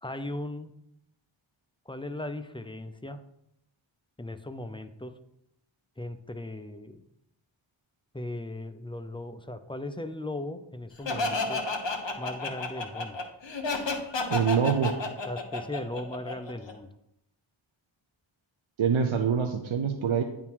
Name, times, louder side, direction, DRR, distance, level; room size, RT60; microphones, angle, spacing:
voice 1, 0.0-0.7 1.9-3.2 4.2-5.1 6.0-7.0 8.1-11.6 12.2-13.2 14.8-14.9 15.2-16.9, left 1 dB, 10° left, 9 dB, 0.4 m, -37 dB
Laughter, 11.1-16.7, left 3 dB, 60° left, 1.1 m, -31 dB
voice 2, 14.3-14.9 18.8-20.2, right 7 dB, 70° right, 4 dB, 0.7 m, -25 dB
9.5 x 3.7 x 4.5 m, 0.80 s
wide cardioid pair, 65°, 49 cm